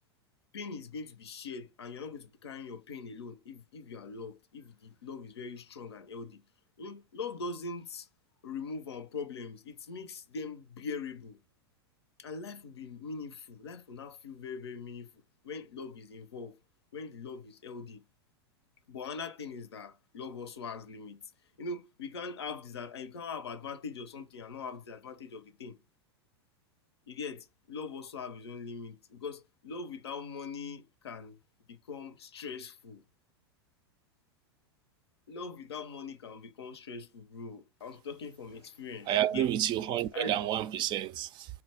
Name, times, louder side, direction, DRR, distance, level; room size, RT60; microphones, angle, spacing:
voice 1, 0.5-6.4 6.8-8.1 8.4-11.4 12.2-15.1 15.4-16.6 16.9-18.0 18.9-21.2 21.6-25.8 27.1-31.4 31.7-33.0 35.3-39.5 40.1-40.3, left 4 dB, 85° left, 0.6 m, -42 dB
voice 2, 39.1-41.5, right 11 dB, 35° right, 0.3 m, -30 dB
4.0 x 2.2 x 4.1 m
hypercardioid pair, 100°, 13 cm